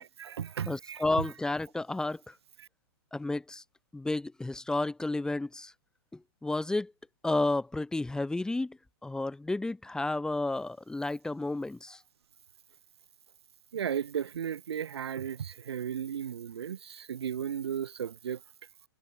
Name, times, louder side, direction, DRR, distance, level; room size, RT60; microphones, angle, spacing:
voice 1, 0.0-1.0 2.6-2.7 13.7-18.4, right 8 dB, 75° right, 3.5 m, -35 dB
voice 2, 0.7-2.3 3.1-3.6 3.9-5.7 6.4-6.9 7.2-12.0, left 2 dB, 5° left, 2.9 m, -31 dB
hypercardioid pair, 130°, 14 cm